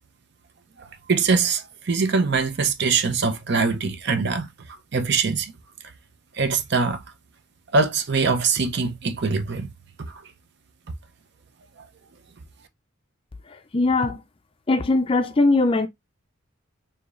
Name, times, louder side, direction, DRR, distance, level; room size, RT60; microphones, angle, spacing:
voice 1, 0.8-4.5 4.9-5.5 6.3-7.0 7.7-9.7 10.1-10.2 11.8-11.9, right 4 dB, 55° right, 0.6 m, -23 dB
voice 2, 13.7-14.2 14.7-15.9, left 2 dB, 25° left, 0.4 m, -20 dB
4.8 x 2.7 x 2.5 m
head